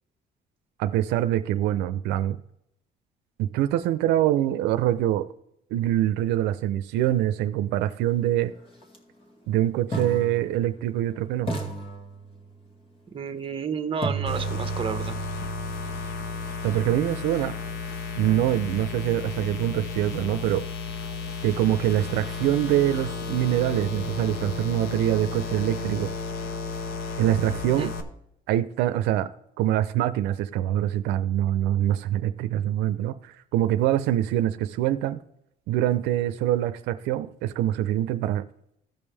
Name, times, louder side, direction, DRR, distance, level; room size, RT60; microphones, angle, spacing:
voice 1, 0.8-2.4 3.4-5.3 5.7-8.5 9.5-11.5 16.6-17.5 18.2-20.6 21.4-26.1 27.2-27.9 28.5-29.3 29.6-35.2 35.7-38.4, right 12 dB, 90° right, 0.5 m, -24 dB
sound 1, 8.8-9.0 9.9-11.1 11.5-12.7 14.0-17.9, right 4 dB, 35° left, 2.1 m, -34 dB
voice 2, 13.1-15.2 27.8-27.9, right 6 dB, 30° right, 1.1 m, -31 dB
sound 2, 14.3-28.0, left 5 dB, 70° left, 1.2 m, -33 dB
15.5 x 5.4 x 3.3 m
cardioid pair, 110°, 17 cm